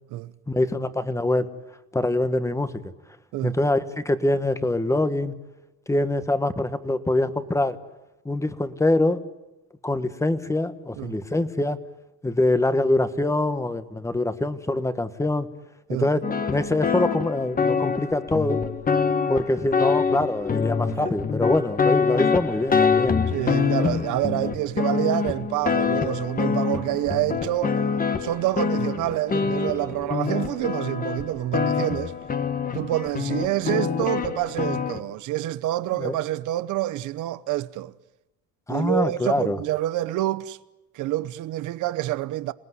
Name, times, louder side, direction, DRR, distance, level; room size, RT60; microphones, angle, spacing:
voice 1, 0.5-1.5 1.9-2.8 3.4-5.3 5.9-7.8 8.2-9.2 9.8-11.8 12.2-15.5 15.9-18.6 19.3-23.2 35.9-36.2 38.7-39.6, left 2 dB, 10° left, 1.4 m, -24 dB
sound 1, 16.2-35.0, left 5 dB, 30° left, 1.4 m, -25 dB
voice 2, 23.3-27.8 28.2-32.1 32.7-37.9 38.7-40.6 40.9-42.5, right 15 dB, 90° right, 0.9 m, -27 dB
27.5 x 19.0 x 9.7 m
cardioid pair, 135°, 30 cm